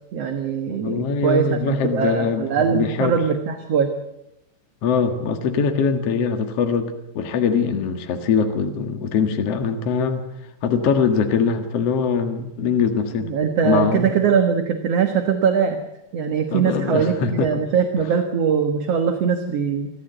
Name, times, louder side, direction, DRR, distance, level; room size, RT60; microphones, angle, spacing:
voice 1, 0.1-3.9 13.2-15.8 16.1-19.9, right 7 dB, 55° right, 6 dB, 2.3 m, -21 dB
voice 2, 0.7-3.2 4.8-10.2 10.6-13.3 13.6-14.1 16.5-17.5, left 6 dB, 55° left, 5 dB, 2.5 m, -22 dB
26.0 x 14.0 x 8.0 m, 0.85 s
omnidirectional pair, 3.6 m